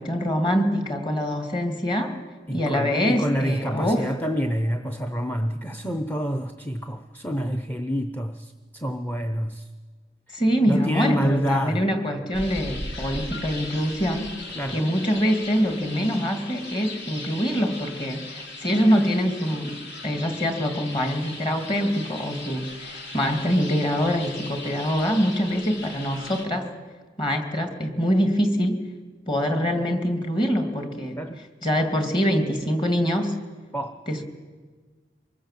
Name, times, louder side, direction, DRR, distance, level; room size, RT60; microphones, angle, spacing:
voice 1, 0.0-2.2 2.5-4.1 10.3-14.3 14.7-19.8 20.0-26.7 27.2-28.8 29.3-31.2 31.6-33.3 34.1-34.2, equal, 30° left, 5 dB, 2.6 m, -24 dB
voice 2, 2.5-9.7 10.3-10.4 10.7-11.9 14.5-15.0 31.2-31.4 33.7-33.9, equal, 10° left, 7 dB, 0.8 m, -27 dB
sound 1, 12.3-26.5, left 2 dB, 75° left, 3.0 m, -38 dB
24.5 x 21.0 x 7.6 m, 1.4 s
head